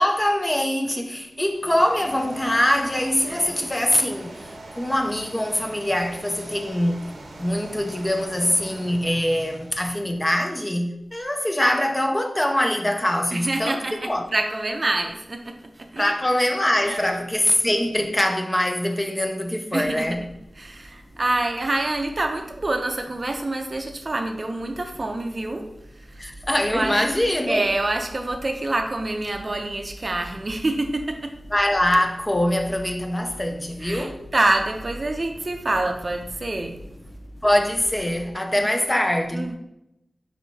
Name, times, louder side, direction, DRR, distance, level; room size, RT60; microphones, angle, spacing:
voice 1, 0.0-7.1 7.4-14.2 16.0-20.2 26.2-27.6 31.5-34.3 37.4-39.5, left 1 dB, 20° left, 0.5 m, -23 dB
sound 1, 1.3-10.5, right 1 dB, 75° right, 0.7 m, -42 dB
voice 2, 3.3-3.7 13.3-16.1 16.8-17.2 19.7-20.2 20.6-25.7 25.9-26.3 26.7-27.0 27.5-31.3 33.8-36.8 39.3-39.6, right 2 dB, 45° right, 0.5 m, -27 dB
sound 2, 19.8-38.3, equal, 75° left, 1.2 m, -45 dB
4.5 x 4.2 x 2.7 m
wide cardioid pair, 80°, 0 cm